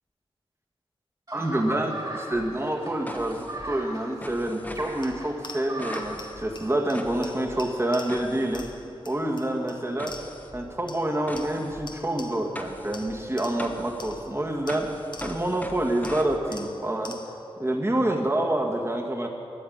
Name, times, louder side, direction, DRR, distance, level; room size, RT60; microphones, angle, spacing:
voice 1, 1.3-8.6 9.1-10.1 10.5-14.9 15.2-17.1 17.6-19.3, right 1 dB, 25° right, 1 dB, 1.8 m, -27 dB
sound 1, 1.3-6.3, right 1 dB, 40° right, 3.5 m, -38 dB
sound 2, 2.3-9.2 10.0-16.4, left 1 dB, 15° left, 1.2 m, -42 dB
sound 3, 5.0-10.6 10.9-12.6 12.9-15.6 16.0-17.5, left 3 dB, 45° left, 0.9 m, -46 dB
13.0 x 8.0 x 9.4 m, 2.6 s
wide cardioid pair, 75°, 10 cm